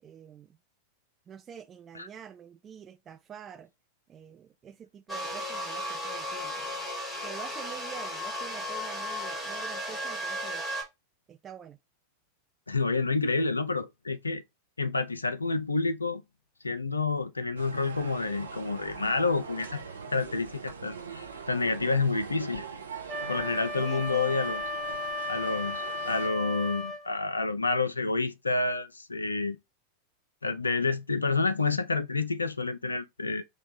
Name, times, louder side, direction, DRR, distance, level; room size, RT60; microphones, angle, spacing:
voice 1, 0.0-0.6 1.3-3.7 4.1-6.7 7.2-10.6 11.3-11.8 23.8-24.3, right 8 dB, 25° right, 0.3 m, -47 dB
sound 1, 5.1-10.8, equal, 10° left, 1.6 m, -35 dB
voice 2, 12.7-14.4 14.8-16.2 16.6-22.7 23.3-24.6 25.3-29.6 30.4-33.4, left 3 dB, 85° left, 0.3 m, -29 dB
sound 2, 17.6-26.3, right 5 dB, 80° right, 0.6 m, -42 dB
Wind instrument woodwind instrument, 23.1-27.1, left 2 dB, 10° right, 1.2 m, -35 dB
4.4 x 2.2 x 2.8 m
figure-of-eight pair, 90°, 0 cm